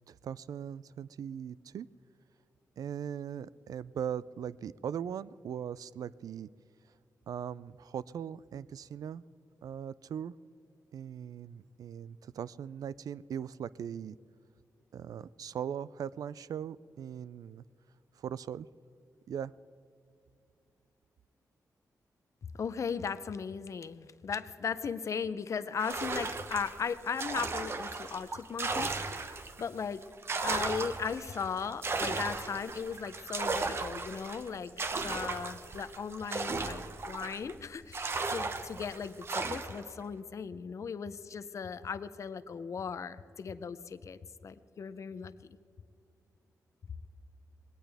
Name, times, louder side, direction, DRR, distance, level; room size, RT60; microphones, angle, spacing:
voice 1, 0.1-1.9 2.8-6.5 7.3-9.2 9.6-10.3 10.9-14.2 14.9-17.6 18.2-18.7 19.3-19.5, right 8 dB, 70° right, 19 dB, 0.3 m, -39 dB
voice 2, 22.6-30.0 30.4-34.7 35.0-45.3, left 6 dB, 50° left, 13 dB, 0.6 m, -37 dB
sound 1, 25.8-29.6 30.0-37.5 37.9-39.9, right 3 dB, 40° right, 1.0 m, -36 dB
21.0 x 17.5 x 3.4 m, 2.5 s
wide cardioid pair, 120°, 6 cm